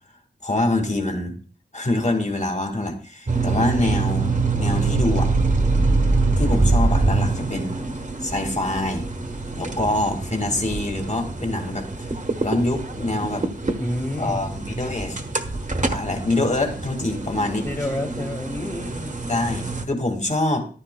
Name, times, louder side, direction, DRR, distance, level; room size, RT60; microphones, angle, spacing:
voice 1, 0.4-1.3 1.7-5.3 6.4-7.8 8.2-9.1 9.6-12.1 12.4-13.5 14.2-15.2 15.9-17.7 19.3-20.6, left 2 dB, 40° left, 3 dB, 1.9 m, -25 dB
sound 1, 3.3-19.9, right 3 dB, 45° right, 1.2 m, -25 dB
voice 2, 13.8-14.4 17.6-19.2, left 1 dB, 20° left, 2 dB, 1.7 m, -29 dB
14.5 x 11.0 x 2.2 m, 0.40 s
wide cardioid pair, 75°, 19 cm